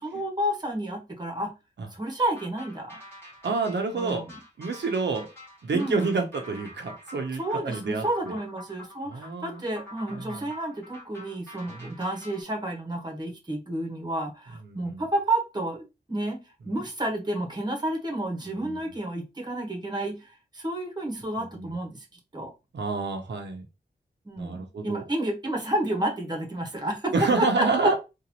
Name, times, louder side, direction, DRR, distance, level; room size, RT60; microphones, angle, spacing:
voice 1, 0.0-1.5 1.9-3.0 3.9-4.4 5.7-6.1 7.4-16.4 16.6-22.0 22.3-22.5 24.2-27.9, right 1 dB, 25° right, 2 dB, 1.3 m, -30 dB
sound 1, 2.3-12.4, left 1 dB, 15° left, 2.0 m, -47 dB
voice 2, 3.4-4.2 4.6-5.3 5.6-8.4 9.1-9.6 10.1-10.4 11.8-11.9 14.7-15.0 18.5-18.8 21.6-21.7 22.7-23.6 24.4-25.0 27.1-28.0, right 3 dB, 80° right, 4 dB, 0.9 m, -28 dB
3.9 x 2.6 x 3.0 m, 0.26 s
wide cardioid pair, 90°, 18 cm